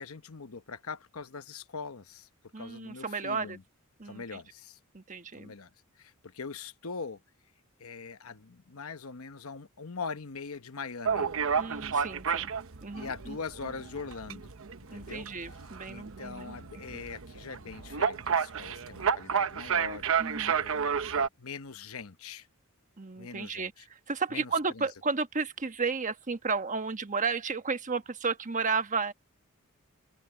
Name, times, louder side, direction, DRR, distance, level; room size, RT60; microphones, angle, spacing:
voice 1, 0.0-2.3 2.6-3.6 4.0-4.8 5.3-5.7 6.0-7.2 7.8-11.3 12.9-14.6 14.9-15.6 15.9-22.5 23.2-23.9 24.3-24.9, left 5 dB, 70° left, 1.0 m, -42 dB
voice 2, 2.5-3.6 4.0-4.4 4.9-5.5 11.6-12.5 12.8-13.4 14.9-16.6 20.2-20.6 23.0-29.1, right 4 dB, 35° right, 1.2 m, -33 dB
sound 1, 11.0-21.3, right 6 dB, 65° right, 0.9 m, -31 dB
open air
head